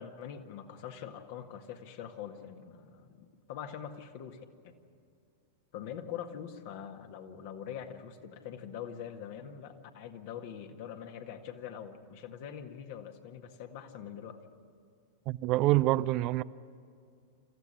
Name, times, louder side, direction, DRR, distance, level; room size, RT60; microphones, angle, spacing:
voice 1, 0.0-4.7 5.7-14.4, left 8 dB, 50° left, 1.9 m, -44 dB
voice 2, 15.3-16.4, right 17 dB, 40° right, 0.5 m, -26 dB
26.5 x 15.0 x 9.8 m
figure-of-eight pair, 95°, 0 cm